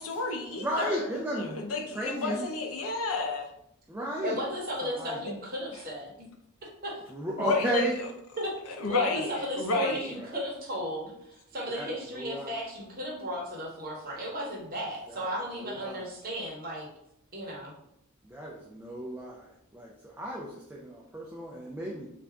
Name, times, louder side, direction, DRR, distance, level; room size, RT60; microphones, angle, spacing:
voice 1, 0.0-3.5 7.4-8.1 8.7-10.1, left 3 dB, 70° left, 3 dB, 0.6 m, -31 dB
voice 2, 0.6-1.6 1.9-2.5 3.9-4.4 4.8-5.2 7.1-7.9 10.1-10.3 11.7-12.5 15.1-15.3 15.6-16.0 18.3-22.1, right 1 dB, 10° right, -3 dB, 0.4 m, -34 dB
voice 3, 4.2-6.1 6.8-7.0 8.4-16.9 17.3-17.7, equal, 40° right, -3 dB, 1.0 m, -35 dB
3.4 x 2.5 x 3.4 m, 0.75 s
head